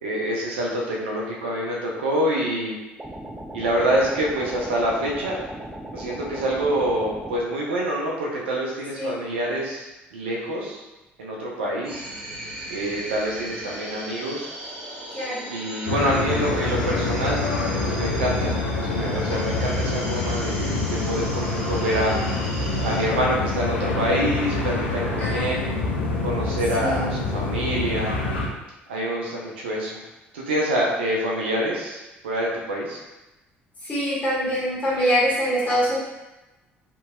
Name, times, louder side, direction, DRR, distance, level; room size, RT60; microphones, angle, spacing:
voice 1, 0.0-2.7 3.5-5.4 5.9-10.8 11.2-12.1 12.7-14.5 15.5-17.4 17.8-18.6 18.8-22.3 22.8-25.8 26.2-28.2 28.9-30.0 30.3-33.0, right 1 dB, 75° right, -3 dB, 0.5 m, -26 dB
sound 1, 3.0-7.5, right 1 dB, 15° right, 0.3 m, -37 dB
sound 2, 11.8-23.0, right 1 dB, 60° right, 0.9 m, -37 dB
voice 2, 15.1-15.4 25.2-25.7 26.8-27.1 33.8-36.0, equal, 25° left, -8 dB, 1.2 m, -24 dB
sound 3, 15.8-28.5, left 3 dB, 75° left, 0.4 m, -26 dB
2.7 x 2.7 x 2.3 m, 1.0 s
figure-of-eight pair, 55°, 6 cm